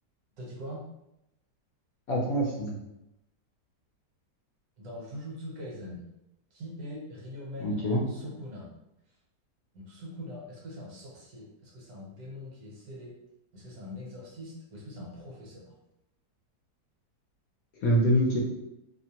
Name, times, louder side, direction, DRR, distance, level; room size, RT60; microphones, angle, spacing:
voice 1, 0.4-0.8 4.8-6.1 6.5-7.8 8.1-8.7 9.7-13.1 13.5-15.8, left 1 dB, 65° right, -4 dB, 1.2 m, -42 dB
voice 2, 2.1-2.8 7.6-8.0 17.8-18.4, equal, 65° left, -3 dB, 0.9 m, -25 dB
2.9 x 2.1 x 2.8 m, 0.86 s
omnidirectional pair, 1.8 m